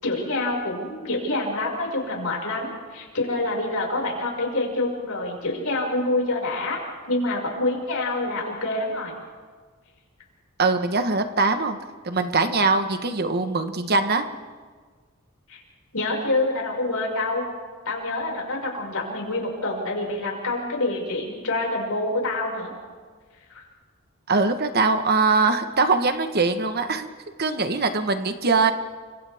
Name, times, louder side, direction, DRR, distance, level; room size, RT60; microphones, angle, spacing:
voice 1, 0.0-6.8 7.1-9.1 15.5-15.6 15.9-17.4 17.8-22.7 23.5-23.6, left 2 dB, 85° left, -2 dB, 6.0 m, -26 dB
voice 2, 10.6-11.8 12.0-14.2 24.3-27.1 27.4-28.7, right 3 dB, 45° right, 8 dB, 1.3 m, -22 dB
30.0 x 25.5 x 3.6 m, 1.5 s
head